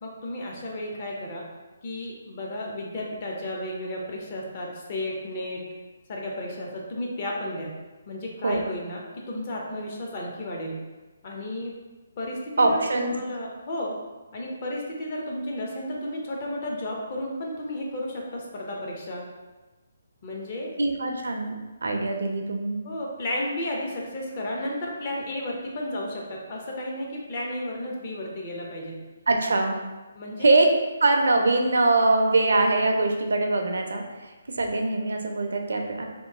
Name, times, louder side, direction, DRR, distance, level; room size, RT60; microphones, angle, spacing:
voice 1, 0.0-1.4 1.8-5.6 6.1-7.7 8.1-10.8 11.2-11.7 12.2-13.9 14.3-19.2 20.2-20.7 22.8-29.0 30.1-30.5, left 1 dB, 35° left, -2 dB, 0.7 m, -33 dB
voice 2, 8.4-8.8 12.6-13.2 20.8-22.8 29.3-29.8 30.4-30.7 31.0-36.1, right 2 dB, 80° right, 3 dB, 0.5 m, -23 dB
3.0 x 2.5 x 3.5 m, 1.2 s
hypercardioid pair, 165°, 0 cm